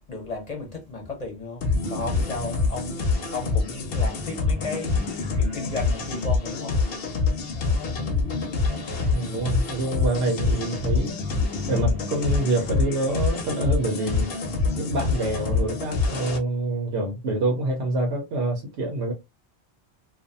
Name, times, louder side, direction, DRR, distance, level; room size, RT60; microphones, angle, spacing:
voice 1, 0.1-6.8, left 3 dB, 40° left, 0.8 m, -34 dB
sound 1, 1.6-16.4, left 3 dB, 65° left, 0.9 m, -26 dB
voice 2, 9.1-11.1 11.7-14.3 14.8-19.1, right 2 dB, 90° right, 1.0 m, -26 dB
2.5 x 2.3 x 2.5 m
omnidirectional pair, 1.1 m